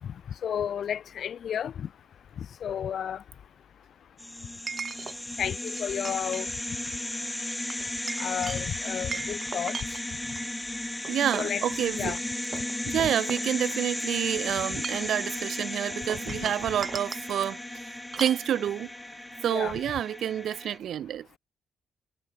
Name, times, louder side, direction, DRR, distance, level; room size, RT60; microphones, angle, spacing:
voice 1, 0.4-1.9 2.6-3.2 5.4-6.5 8.2-9.7 11.3-11.6 12.0-12.2 13.0-13.1 16.3-16.5 19.5-19.8, left 9 dB, 60° left, 1.7 m, -32 dB
Chink clink, 1.2-1.3 4.7-5.2 5.7-6.5 6.8-7.0 7.7-10.5 11.0-11.6 12.1-12.2 12.5-13.9 14.6-15.2 16.1-17.3 18.1-18.5, right 5 dB, 40° right, 2.7 m, -38 dB
sound 1, 4.2-20.8, left 1 dB, 10° left, 0.9 m, -35 dB
voice 2, 11.1-12.1 12.9-18.9 19.4-21.4, right 10 dB, 70° right, 0.7 m, -29 dB
cardioid pair, 90°, 0 cm